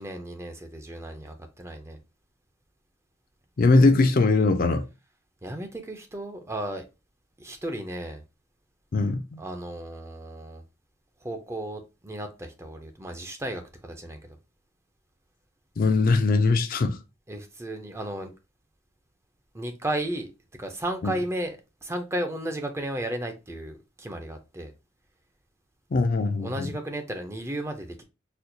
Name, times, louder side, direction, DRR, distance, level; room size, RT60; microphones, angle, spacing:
voice 1, 0.0-2.0 5.4-6.8 7.4-8.2 9.4-10.6 11.2-14.4 17.3-18.3 19.5-24.7 26.4-28.0, right 1 dB, 15° right, 0.5 m, -34 dB
voice 2, 3.6-4.9 8.9-9.4 15.8-17.0 21.0-21.1 25.9-26.7, left 3 dB, 45° left, 0.4 m, -21 dB
4.2 x 2.3 x 2.6 m
head